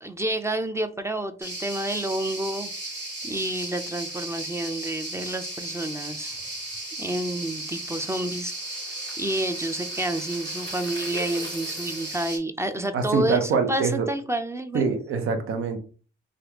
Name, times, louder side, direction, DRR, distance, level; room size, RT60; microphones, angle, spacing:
voice 1, 0.0-2.7 3.2-6.4 7.0-8.5 9.2-14.9, right 1 dB, 15° right, 0.4 m, -29 dB
sound 1, 1.4-12.4, right 1 dB, 60° right, 1.5 m, -35 dB
voice 2, 12.9-14.1 14.7-15.8, right 5 dB, 85° right, 0.6 m, -24 dB
3.2 x 2.4 x 2.8 m
cardioid pair, 70°, 21 cm